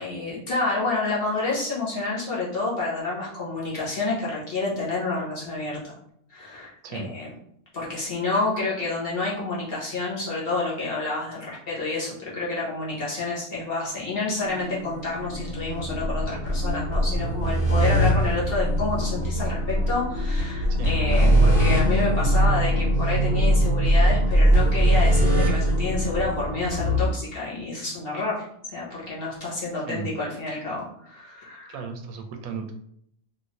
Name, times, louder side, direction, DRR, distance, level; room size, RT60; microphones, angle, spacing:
voice 1, 0.0-5.9 6.3-7.3 7.7-28.4 28.7-31.8, left 3 dB, 45° left, -5 dB, 1.1 m, -29 dB
sound 1, 14.4-27.1, equal, 85° left, 1.6 m, -22 dB
voice 2, 20.7-21.4 29.9-30.1 31.7-32.7, right 6 dB, 75° right, 5 dB, 1.0 m, -35 dB
3.0 x 2.6 x 2.9 m, 0.69 s
omnidirectional pair, 1.5 m